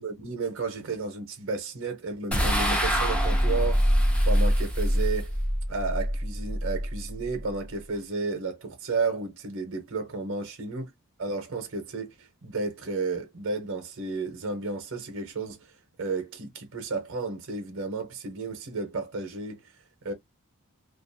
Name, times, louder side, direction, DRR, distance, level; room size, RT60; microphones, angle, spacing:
voice 1, 0.0-3.8 4.2-5.3 5.7-10.9 11.2-15.7 16.0-19.6 20.0-20.1, right 3 dB, 60° right, 0.7 m, -32 dB
sound 1, 2.3-7.7, equal, 5° left, 0.5 m, -25 dB
2.4 x 2.3 x 2.6 m
head